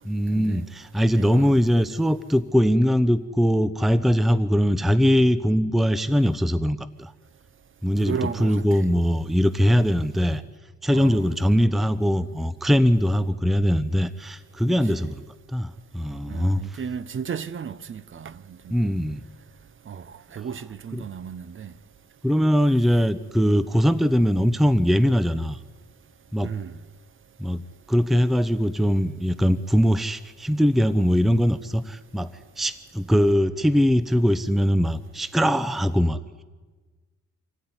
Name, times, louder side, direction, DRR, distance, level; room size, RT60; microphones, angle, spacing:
voice 1, 0.0-7.1 7.8-10.4 10.8-15.2 15.5-16.8 18.7-19.2 20.9-21.0 22.2-25.6 26.3-26.5 27.4-27.6 27.9-36.4, equal, ahead, 0.8 m, -21 dB
voice 2, 1.1-1.6 8.1-8.9 10.9-11.3 15.0-15.1 16.3-18.3 18.6-18.7 19.9-20.0 20.3-21.7 26.4-26.7, right 7 dB, 40° right, 0.9 m, -34 dB
26.0 x 14.5 x 9.8 m
cardioid pair, 90°, 30 cm